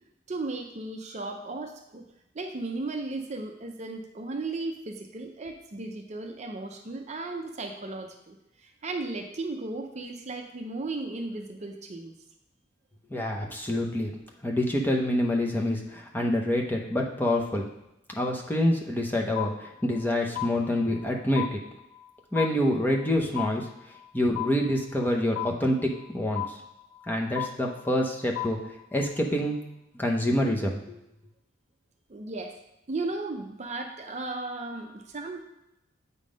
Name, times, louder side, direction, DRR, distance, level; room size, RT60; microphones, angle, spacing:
voice 1, 0.3-2.0 2.3-12.1 32.1-32.6 32.9-35.4, right 2 dB, 35° right, 4 dB, 0.5 m, -35 dB
voice 2, 13.1-14.1 14.4-17.6 18.1-21.6 22.3-23.7 24.1-26.6 27.1-28.6 28.9-29.6 29.9-31.0, left 1 dB, 10° left, -1 dB, 0.7 m, -26 dB
sound 1, 19.4-20.1 20.4-21.1 21.4-22.1 22.4-23.1 23.4-24.1 24.4-25.1 25.4-26.1 26.4-27.1 27.4-28.1 28.4-29.1, left 13 dB, 70° left, 0.4 m, -35 dB
8.2 x 3.7 x 5.1 m, 0.88 s
head